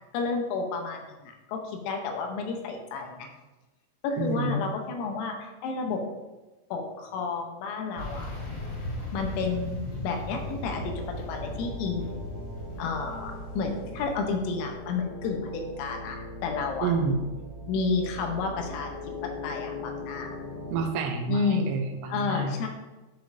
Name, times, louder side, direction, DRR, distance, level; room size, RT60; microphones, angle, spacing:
voice 1, 0.1-3.3 4.0-6.0 6.7-8.3 9.1-12.1 12.8-16.9 17.7-18.9 19.4-20.4 21.3-21.7 22.1-22.7, left 4 dB, 80° left, 3 dB, 3.4 m, -31 dB
voice 2, 4.2-4.6 16.8-17.3 20.7-22.5, right 4 dB, 80° right, 3 dB, 3.4 m, -28 dB
sound 1, 8.0-14.2, left 2 dB, 65° left, 4.4 m, -38 dB
sound 2, 10.3-20.8, left 1 dB, 50° right, 1.2 m, -40 dB
12.0 x 5.0 x 2.6 m, 1.1 s
omnidirectional pair, 6.0 m